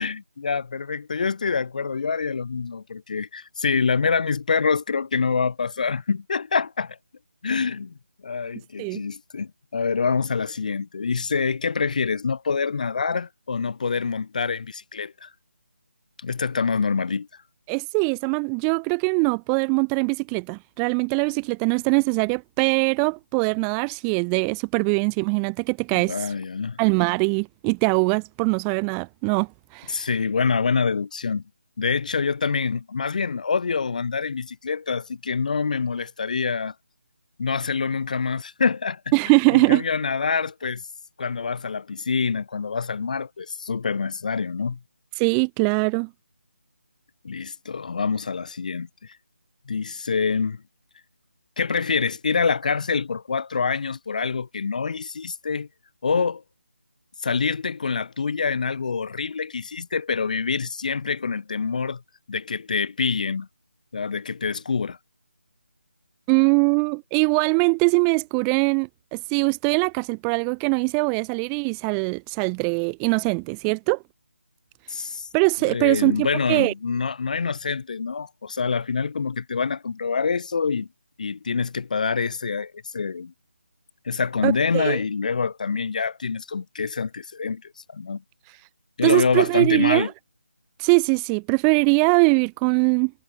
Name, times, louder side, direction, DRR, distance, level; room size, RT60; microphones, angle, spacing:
voice 1, 0.0-7.0 7.4-7.9 8.2-15.3 16.2-17.3 25.9-26.8 29.9-31.4 31.8-36.7 37.4-39.0 39.5-40.8 41.2-44.8 47.2-48.9 49.7-50.6 51.6-55.7 56.0-56.4 57.2-62.0 62.3-63.5 63.9-65.0 74.9-75.3 75.6-80.9 81.2-83.3 84.0-87.6 87.9-88.2 89.0-90.1, left 5 dB, 35° left, 1.0 m, -26 dB
voice 2, 17.7-26.3 26.8-30.0 39.1-39.8 45.2-46.1 66.3-74.0 75.3-76.7 84.4-85.0 88.5-88.6 89.0-90.1 90.8-93.1, right 40 dB or more, 5° right, 0.4 m, -22 dB
figure-of-eight pair, 170°, 7 cm